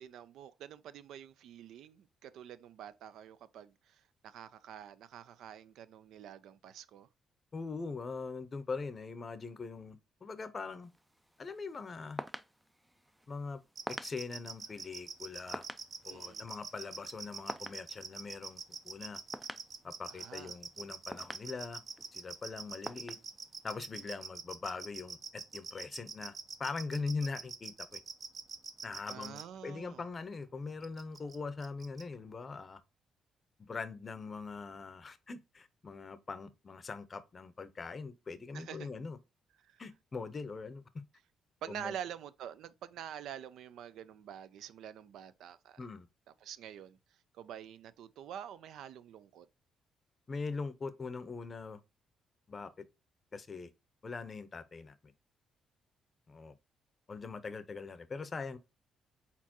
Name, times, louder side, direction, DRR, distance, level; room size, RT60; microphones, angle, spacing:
voice 1, 0.0-7.1 16.1-16.5 20.1-20.6 29.1-30.0 38.5-38.9 39.6-39.8 41.6-45.8 46.4-49.5, right 9 dB, 80° right, 0.4 m, -47 dB
voice 2, 7.5-10.9 11.4-12.2 13.3-13.6 14.0-15.6 16.0-19.2 19.8-21.8 22.1-23.2 23.6-26.3 26.6-28.0 28.8-32.8 33.7-39.2 39.8-40.8 41.7-41.9 45.8-46.1 50.3-51.8 52.5-52.8 53.3-53.7 54.0-55.1 56.3-56.5 57.1-58.6, left 4 dB, 35° left, 0.6 m, -42 dB
sound 1, 10.8-24.0, right 1 dB, 5° right, 0.3 m, -49 dB
sound 2, 13.8-29.4 30.8-31.4 31.6-32.0, right 5 dB, 50° right, 0.7 m, -44 dB
4.2 x 4.1 x 2.9 m
cardioid pair, 90°, 0 cm